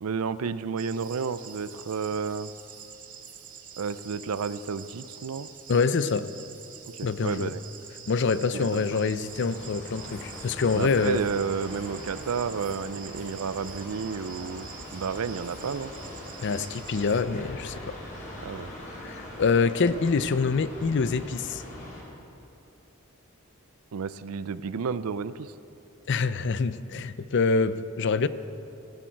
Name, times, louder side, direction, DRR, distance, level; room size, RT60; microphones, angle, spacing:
voice 1, 0.0-2.5 3.8-5.5 6.9-7.6 8.5-9.0 10.7-14.7 14.9-15.9 18.4-18.7 23.9-25.5, right 5 dB, 80° right, 15 dB, 0.5 m, -31 dB
sound 1, 0.8-17.2, right 7 dB, 40° right, 1.0 m, -46 dB
voice 2, 5.7-6.3 7.0-7.5 8.1-11.2 16.4-18.0 19.0-21.6 26.1-28.3, left 4 dB, 55° left, 14 dB, 0.5 m, -25 dB
sound 2, 9.0-22.0, left 1 dB, 35° left, 3.3 m, -42 dB
16.0 x 12.5 x 4.6 m, 2.7 s
head